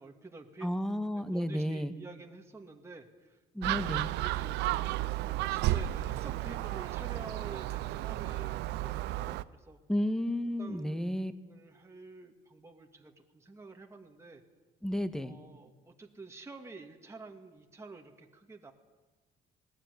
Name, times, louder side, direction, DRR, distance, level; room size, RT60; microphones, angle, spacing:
voice 1, 0.0-0.7 1.1-3.4 4.1-9.8 10.6-14.4 15.2-18.7, right 3 dB, 15° right, 2 dB, 2.2 m, -49 dB
voice 2, 0.6-1.9 3.5-4.1 9.9-11.3 14.8-15.3, equal, 5° left, 10 dB, 1.7 m, -32 dB
Gull seagull, 3.6-9.4, right 15 dB, 85° right, 0.7 m, -33 dB
20.0 x 18.5 x 9.9 m, 1.2 s
cardioid pair, 110°, 17 cm